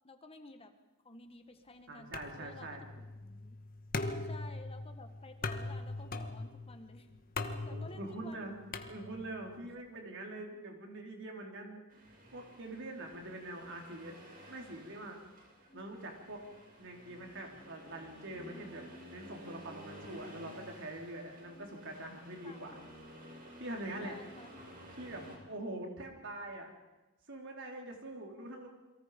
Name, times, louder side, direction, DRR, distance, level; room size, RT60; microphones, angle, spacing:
voice 1, 0.0-0.7 1.0-2.7 3.1-3.6 4.0-7.1 7.7-8.5 15.7-15.9 21.3-21.8 22.4-22.9 24.0-24.6, left 2 dB, 30° left, 7 dB, 1.6 m, -53 dB
voice 2, 1.9-2.9 4.0-4.3 7.7-8.6 8.9-11.8 12.3-14.1 14.5-15.2 15.7-16.4 16.8-18.8 19.1-22.8 23.6-24.2 24.9-26.7 27.3-28.7, right 1 dB, 60° right, 1 dB, 4.3 m, -44 dB
sound 1, 2.1-9.5, left 3 dB, 45° left, 1.6 m, -41 dB
Accelerating revving vroom, 11.9-25.4, right 1 dB, 45° right, 6.1 m, -53 dB
28.5 x 23.0 x 5.3 m, 1.1 s
head